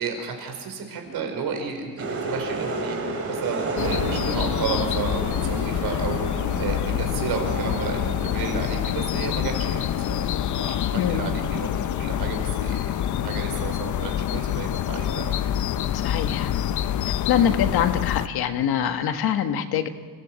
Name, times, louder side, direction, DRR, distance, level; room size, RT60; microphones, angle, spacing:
voice 1, 0.0-3.0 3.3-6.2 6.6-11.7 12.0-15.4, right 6 dB, 75° right, 4 dB, 5.1 m, -32 dB
sound 1, 1.1-1.9 3.8-7.4, right 3 dB, 50° right, 7.9 m, -41 dB
sound 2, 2.0-16.5, right 3 dB, 35° right, 3.3 m, -34 dB
sound 3, 3.8-18.3, left 11 dB, 50° left, 0.6 m, -26 dB
voice 2, 11.0-11.3 16.0-16.5 17.3-19.9, left 9 dB, 80° left, 7 dB, 1.6 m, -24 dB
29.5 x 16.0 x 7.7 m, 1.5 s
cardioid pair, 170°, 37 cm